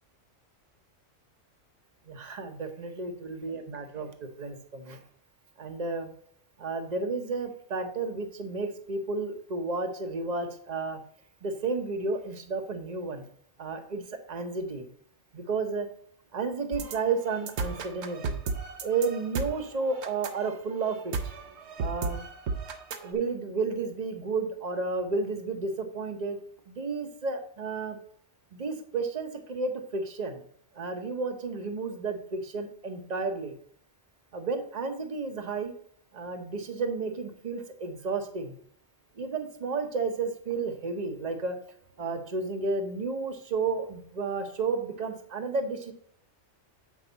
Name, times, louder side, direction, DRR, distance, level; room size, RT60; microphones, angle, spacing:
voice 1, 2.1-5.0 5.6-6.1 6.6-11.0 11.4-13.3 13.6-14.0 14.3-14.9 15.3-15.9 16.3-18.4 18.8-21.2 21.8-22.2 23.0-26.4 26.7-28.0 28.5-30.4 30.7-33.6 34.3-35.7 36.1-38.6 39.2-41.6 42.0-45.9, right 4 dB, 40° right, 6 dB, 1.0 m, -32 dB
sound 1, 16.7-23.1, right 4 dB, 65° right, 1.0 m, -35 dB
8.5 x 4.8 x 4.0 m, 0.64 s
omnidirectional pair, 1.3 m